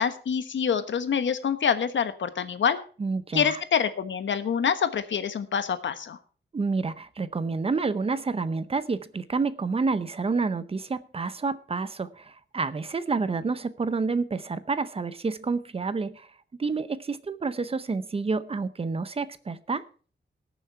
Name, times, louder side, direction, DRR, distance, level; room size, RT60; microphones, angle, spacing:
voice 1, 0.0-2.8 3.3-6.2, left 7 dB, 85° left, 10 dB, 1.3 m, -26 dB
voice 2, 3.0-3.6 6.5-16.3 16.6-19.8, right 4 dB, 30° right, 13 dB, 0.7 m, -29 dB
19.0 x 7.1 x 4.6 m, 0.40 s
wide cardioid pair, 180°, 19 cm